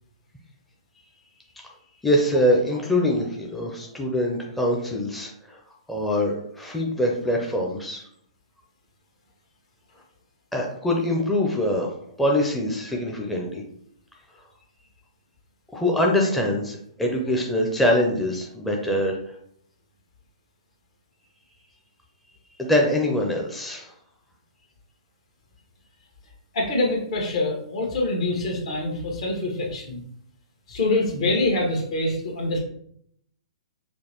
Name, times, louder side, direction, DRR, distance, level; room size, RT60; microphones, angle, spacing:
voice 1, 2.0-5.6 5.9-8.0 10.5-11.9 12.2-13.6 15.7-19.2 22.6-23.9, left 1 dB, 5° left, -1 dB, 0.5 m, -23 dB
voice 2, 26.5-30.0 30.7-32.6, left 2 dB, 65° left, 0 dB, 1.3 m, -25 dB
5.0 x 2.1 x 3.0 m, 0.69 s
hypercardioid pair, 130°, 4 cm